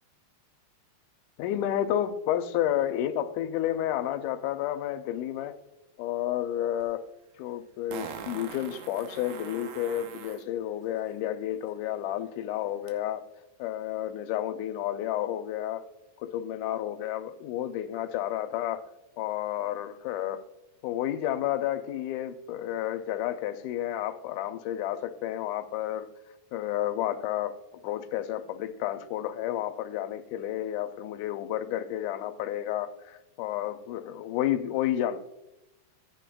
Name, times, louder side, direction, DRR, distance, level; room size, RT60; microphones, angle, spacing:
voice 1, 1.4-5.6 6.0-7.0 7.4-13.2 13.6-15.8 16.2-18.8 19.2-20.4 20.8-26.1 26.5-27.5 27.8-35.2, left 12 dB, 80° left, 8 dB, 1.8 m, -31 dB
Fart, 6.8-6.9 7.9-10.4 12.9-13.0, right 7 dB, 90° right, 2.7 m, -41 dB
15.0 x 9.0 x 2.3 m, 0.93 s
omnidirectional pair, 4.1 m